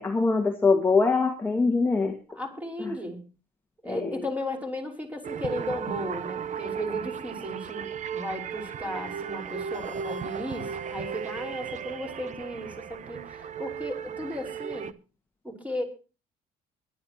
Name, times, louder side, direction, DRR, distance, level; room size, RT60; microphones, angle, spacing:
voice 1, 0.0-2.2 2.8-2.9 3.9-4.1, left 4 dB, 10° left, 2 dB, 2.0 m, -23 dB
voice 2, 2.3-3.2 3.8-14.9 15.4-15.8, left 1 dB, 10° right, 2 dB, 5.3 m, -35 dB
sound 1, 5.2-14.9, right 7 dB, 45° right, 1.0 m, -36 dB
23.0 x 12.0 x 3.0 m, 0.34 s
cardioid pair, 110°, 17 cm